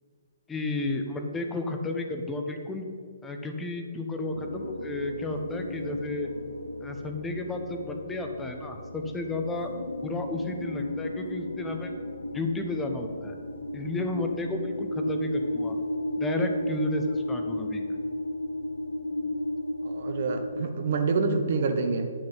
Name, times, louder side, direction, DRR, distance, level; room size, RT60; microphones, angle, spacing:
voice 1, 0.5-2.9 3.2-6.3 6.8-9.7 10.0-11.9 12.3-13.3 13.7-15.8 16.2-17.8, left 2 dB, 10° left, 4 dB, 0.8 m, -32 dB
sound 1, 4.3-20.6, left 1 dB, 85° left, 0.5 m, -34 dB
voice 2, 19.8-22.1, right 4 dB, 50° right, 7 dB, 1.0 m, -27 dB
9.7 x 6.7 x 5.6 m, 2.3 s
figure-of-eight pair, 130°, 0 cm